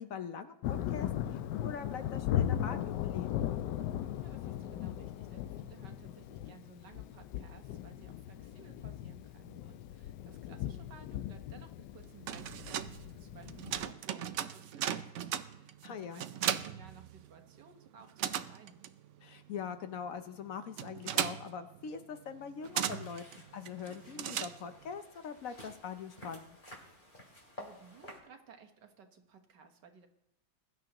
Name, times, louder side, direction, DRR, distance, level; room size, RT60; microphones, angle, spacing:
voice 1, 0.0-3.3 15.8-16.2 19.2-23.2 23.5-26.6, left 6 dB, 65° left, 9 dB, 1.0 m, -43 dB
Thunder, 0.6-13.9, left 11 dB, 85° left, 1.2 m, -38 dB
voice 2, 4.2-18.8 27.6-30.1, right 5 dB, 85° right, 5 dB, 1.9 m, -57 dB
sound 1, 12.0-17.6 17.9-25.0, right 10 dB, 65° right, 0.7 m, -38 dB
sound 2, 22.6-28.2, left 1 dB, 30° left, 2.7 m, -53 dB
21.5 x 11.0 x 3.0 m, 0.89 s
omnidirectional pair, 1.8 m